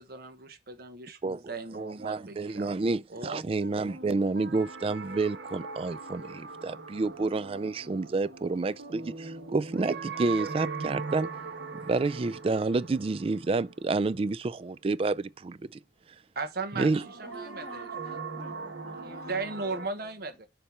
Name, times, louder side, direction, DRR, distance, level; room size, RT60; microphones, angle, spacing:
voice 1, 0.0-2.7 3.1-3.4 16.3-17.9 19.0-20.5, right 3 dB, 60° right, 1.3 m, -37 dB
voice 2, 1.2-11.3 11.8-15.6 16.8-17.0, right 3 dB, 35° right, 0.4 m, -29 dB
sound 1, 3.6-14.5 16.6-19.9, right 4 dB, 90° right, 1.3 m, -40 dB
voice 3, 17.0-20.1, left 1 dB, 40° left, 1.3 m, -51 dB
7.2 x 3.3 x 5.8 m
head